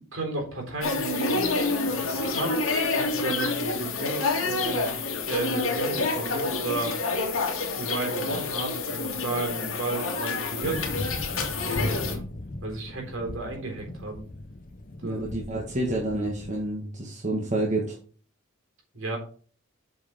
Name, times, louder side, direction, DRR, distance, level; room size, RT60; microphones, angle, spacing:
voice 1, 0.1-1.4 1.8-2.6 2.9-5.0 5.3-7.0 7.7-11.4 11.7-12.2 12.6-14.2 15.0-15.3 18.9-19.2, right 3 dB, 60° right, 1 dB, 3.7 m, -33 dB
sound 1, 0.8-12.1, left 3 dB, 70° left, 2.2 m, -28 dB
sound 2, 10.6-16.7, left 1 dB, 40° left, 0.8 m, -37 dB
voice 2, 15.0-17.9, right 2 dB, 35° right, -2 dB, 1.7 m, -29 dB
8.0 x 5.3 x 5.0 m, 0.41 s
head